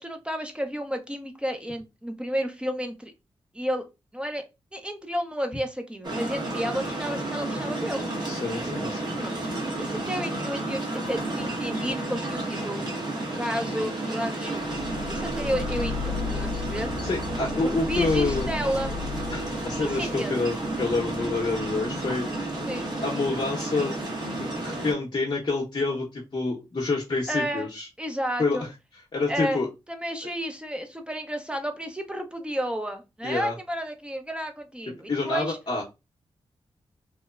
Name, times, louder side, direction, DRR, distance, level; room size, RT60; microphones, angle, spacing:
voice 1, 0.0-3.1 3.5-3.9 4.1-4.4 4.7-8.0 9.2-9.4 9.8-10.8 11.1-12.9 13.2-16.9 17.6-18.9 19.8-20.4 22.7-22.9 27.3-27.7 28.0-28.6 29.3-29.6 29.9-35.6, equal, 10° right, 6 dB, 0.6 m, -31 dB
sound 1, 6.0-24.9, right 2 dB, 40° right, 1.1 m, -31 dB
voice 2, 8.2-9.2 17.0-18.5 19.3-22.2 23.0-23.9 24.4-27.9 28.4-28.7 29.1-29.7 33.2-33.5 34.9-35.8, left 3 dB, 45° left, -1 dB, 0.8 m, -28 dB
sound 2, 14.6-22.9, left 5 dB, 75° left, 0.5 m, -36 dB
2.9 x 2.1 x 2.3 m, 0.25 s
supercardioid pair, 40°, 11 cm